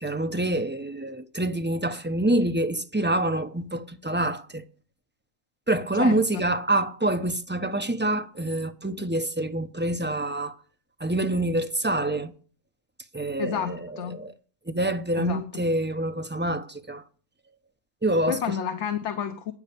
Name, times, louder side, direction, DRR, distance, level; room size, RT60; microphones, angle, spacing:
voice 1, 0.0-4.6 5.7-10.6 11.0-12.3 13.1-14.3 14.7-17.0 18.0-18.6, right 1 dB, 10° right, 0.7 m, -26 dB
voice 2, 13.4-14.3 15.2-15.4 18.3-19.5, left 8 dB, 60° left, 1.2 m, -30 dB
9.3 x 7.2 x 8.4 m
omnidirectional pair, 1.4 m